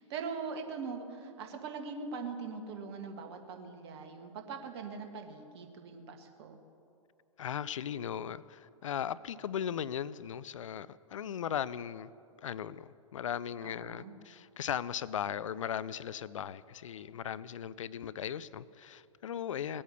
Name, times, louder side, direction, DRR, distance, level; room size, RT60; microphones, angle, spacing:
voice 1, 0.0-6.6 13.6-14.1, right 5 dB, 50° right, 5 dB, 1.8 m, -41 dB
voice 2, 7.4-12.1 12.4-19.8, left 9 dB, 65° left, 18 dB, 0.4 m, -38 dB
19.0 x 8.6 x 6.8 m, 2.6 s
figure-of-eight pair, 105°, 17 cm